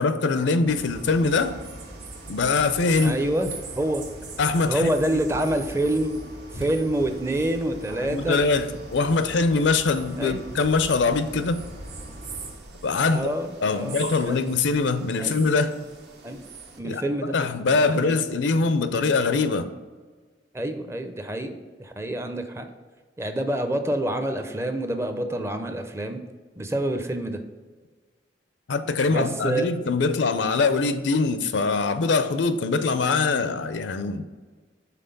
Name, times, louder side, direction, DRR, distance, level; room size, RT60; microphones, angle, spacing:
voice 1, 0.0-1.5 2.3-3.2 4.4-4.9 8.0-11.6 12.8-13.3 13.6-15.8 16.8-19.7 28.7-34.3, left 4 dB, 80° left, 11 dB, 0.5 m, -23 dB
sound 1, 0.6-12.5, equal, 50° right, 1.6 m, -42 dB
sound 2, 0.7-16.8, right 5 dB, 65° right, 0.9 m, -44 dB
voice 2, 3.0-3.5 3.8-4.1 4.7-6.2 6.5-8.4 10.2-10.4 13.1-14.4 15.2-15.4 16.2-16.4 16.8-17.4 17.9-18.1 20.5-22.7 23.2-26.2 26.6-27.4 29.0-29.7, right 1 dB, 15° right, 7 dB, 0.5 m, -27 dB
sound 3, 3.2-3.6 5.8-5.9 6.5-9.1, equal, 90° right, 2.0 m, -44 dB
5.8 x 4.0 x 5.2 m, 1.4 s
head